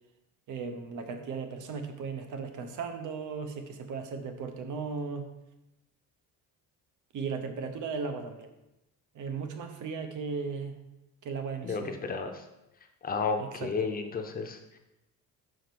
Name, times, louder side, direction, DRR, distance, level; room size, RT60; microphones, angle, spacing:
voice 1, 0.5-5.3 7.1-8.5 9.1-10.7 11.2-12.0 13.4-13.7, right 5 dB, 55° right, 7 dB, 0.9 m, -36 dB
voice 2, 11.6-12.4 13.0-14.8, left 4 dB, 25° left, 4 dB, 0.7 m, -32 dB
5.2 x 5.1 x 6.0 m, 0.94 s
cardioid pair, 165°, 35 cm